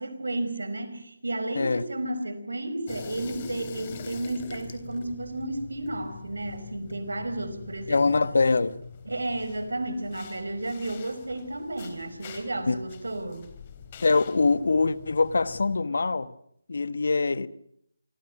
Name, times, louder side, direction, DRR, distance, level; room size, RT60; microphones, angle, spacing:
voice 1, 0.0-8.1 9.1-13.5, right 1 dB, 80° right, 5.2 m, -32 dB
sound 1, 2.9-15.8, left 5 dB, 30° left, 3.6 m, -44 dB
voice 2, 7.9-8.8 12.7-12.8 14.0-16.3 16.7-17.5, left 3 dB, 65° left, 1.4 m, -23 dB
27.5 x 24.5 x 6.1 m
figure-of-eight pair, 155°, 0 cm